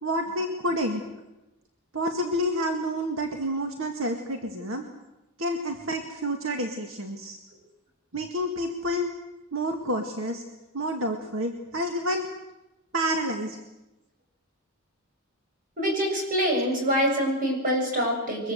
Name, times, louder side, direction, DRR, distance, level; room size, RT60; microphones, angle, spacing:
voice 1, 0.0-1.0 1.9-4.9 5.4-7.4 8.1-9.1 9.5-10.4 10.7-12.3 12.9-13.6, equal, 80° right, 4 dB, 2.0 m, -29 dB
voice 2, 15.8-18.5, equal, 45° right, 1 dB, 7.5 m, -25 dB
23.0 x 21.5 x 8.0 m, 0.98 s
head